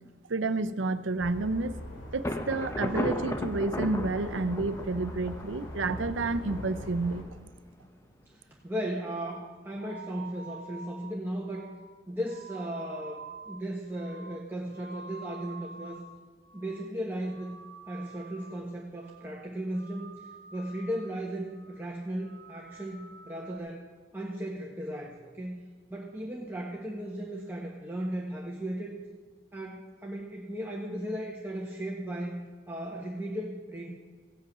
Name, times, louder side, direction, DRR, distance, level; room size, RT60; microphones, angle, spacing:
voice 1, 0.3-1.7 2.1-7.2, right 3 dB, 85° right, 12 dB, 0.7 m, -30 dB
sound 1, 1.2-7.2, left 1 dB, 85° left, 2.6 m, -42 dB
Thunder, 2.2-7.9, left 1 dB, 15° left, 0.7 m, -36 dB
voice 2, 8.3-11.7 12.1-13.2 13.5-16.0 16.5-17.6 17.9-20.1 20.5-23.9 24.1-25.6 25.9-29.0 29.5-33.9, right 1 dB, 10° right, -3 dB, 1.2 m, -36 dB
sound 2, 9.2-16.2 16.4-17.0 17.2-18.7 19.0-19.4 19.7-21.2 21.5-21.9 22.2-23.6, right 4 dB, 60° right, 0.9 m, -48 dB
16.0 x 8.5 x 6.1 m, 1.5 s
head